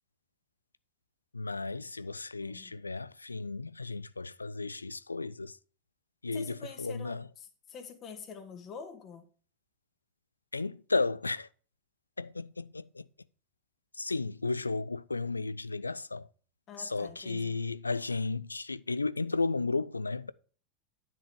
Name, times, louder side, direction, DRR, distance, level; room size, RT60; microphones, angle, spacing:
voice 1, 1.3-5.6 6.2-7.3 10.5-11.5 12.2-13.1 13.9-16.3 16.8-20.3, left 3 dB, 85° left, 0.4 m, -34 dB
voice 2, 2.4-2.8 6.3-9.2 16.7-17.6, left 5 dB, 35° left, 1.9 m, -46 dB
10.5 x 6.2 x 4.9 m
figure-of-eight pair, 85°, 0 cm